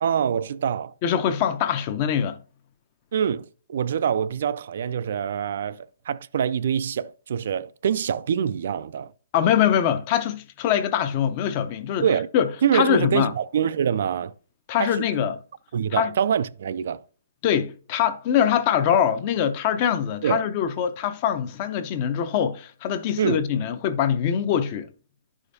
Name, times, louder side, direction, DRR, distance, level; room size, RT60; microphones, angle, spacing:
voice 1, 0.0-0.9 3.1-9.1 12.0-12.3 12.6-14.3 14.8-15.2 15.7-17.0 20.2-20.4 23.2-23.4, right 8 dB, 55° right, 0.3 m, -25 dB
voice 2, 1.0-2.4 9.3-12.1 12.3-12.5 12.7-13.3 14.7-15.4 15.9-16.1 17.4-24.9, left 9 dB, 30° left, 0.6 m, -23 dB
10.5 x 4.9 x 2.7 m
hypercardioid pair, 165°, 0 cm